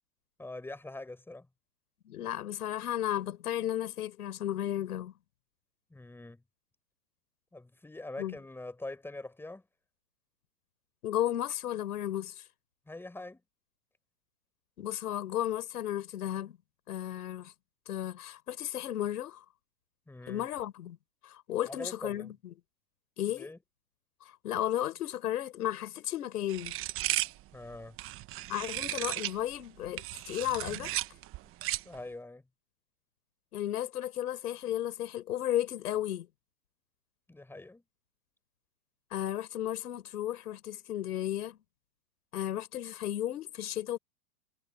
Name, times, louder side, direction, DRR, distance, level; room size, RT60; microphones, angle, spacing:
voice 1, 0.4-1.5 5.9-6.4 7.5-9.6 12.9-13.4 20.1-20.5 21.6-22.3 23.2-23.6 27.5-28.0 31.4-31.5 31.8-32.5 37.3-37.8, left 2 dB, 5° left, 4.6 m, -44 dB
voice 2, 2.1-5.1 8.2-8.3 11.0-12.4 14.8-16.6 16.9-17.5 17.9-19.4 20.3-21.0 21.2-22.3 23.2-23.5 24.4-26.8 28.5-30.9 33.5-36.3 39.1-41.6 42.3-44.0, left 12 dB, 75° left, 5.7 m, -34 dB
sound 1, 26.5-29.4 29.8-32.0, right 17 dB, 30° right, 1.1 m, -35 dB
hypercardioid pair, 140°, 46 cm